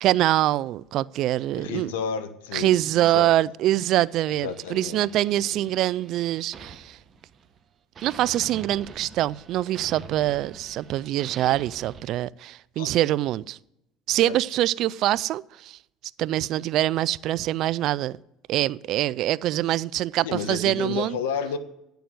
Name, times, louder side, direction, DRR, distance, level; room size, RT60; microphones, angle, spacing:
voice 1, 0.0-1.9 2.5-7.0 8.0-13.6 14.1-15.8 16.2-18.2 18.5-21.2, right 14 dB, 65° right, 0.3 m, -24 dB
voice 2, 1.6-3.3 4.3-5.0 5.5-5.7 12.8-12.9 14.2-14.4 20.2-21.6, left 6 dB, 90° left, 1.0 m, -31 dB
sound 1, 4.0-7.6 7.9-12.0, right 5 dB, 40° right, 1.3 m, -45 dB
10.5 x 6.9 x 7.7 m
supercardioid pair, 85°, 0 cm